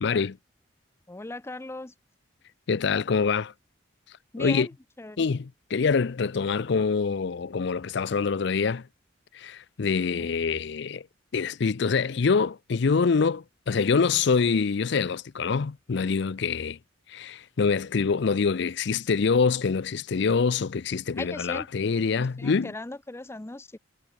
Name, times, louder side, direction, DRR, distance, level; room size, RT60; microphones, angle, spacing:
voice 1, 0.0-0.4 2.7-3.5 4.4-4.7 5.2-8.9 9.3-11.0 11.3-16.8 17.1-22.7, left 5 dB, 60° left, 0.5 m, -25 dB
voice 2, 1.1-1.9 4.3-4.7 5.0-5.3 10.0-10.3 21.2-21.7 22.2-23.8, left 2 dB, 15° left, 0.5 m, -38 dB
head